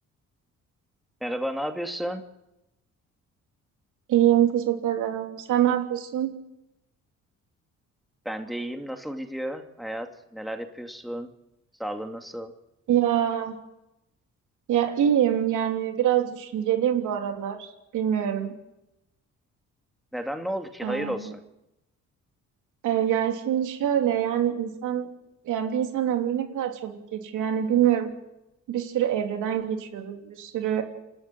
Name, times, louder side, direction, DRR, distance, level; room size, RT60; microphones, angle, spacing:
voice 1, 1.2-2.2 8.2-11.3 11.8-12.5 20.1-21.4, equal, ahead, 4 dB, 2.4 m, -32 dB
voice 2, 4.1-6.3 12.9-13.5 14.7-18.5 20.8-21.3 22.8-25.1 25.4-28.1 28.7-30.8, right 10 dB, 80° right, 4 dB, 3.2 m, -25 dB
28.0 x 12.5 x 9.1 m, 0.90 s
cardioid pair, 90°, 30 cm